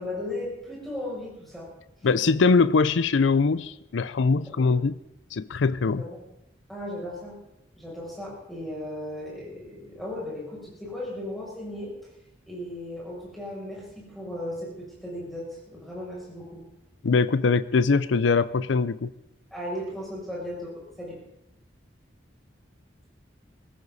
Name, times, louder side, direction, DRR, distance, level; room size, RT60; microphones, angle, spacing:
voice 1, 0.0-1.7 2.0-2.1 4.6-4.7 6.0-6.2 6.7-7.3 7.8-11.9 12.5-16.6 19.5-21.2, left 1 dB, ahead, -5 dB, 7.0 m, -36 dB
voice 2, 2.0-4.9 5.3-6.0 17.0-19.1, left 4 dB, 75° left, 15 dB, 0.5 m, -22 dB
22.0 x 14.5 x 4.1 m, 0.84 s
head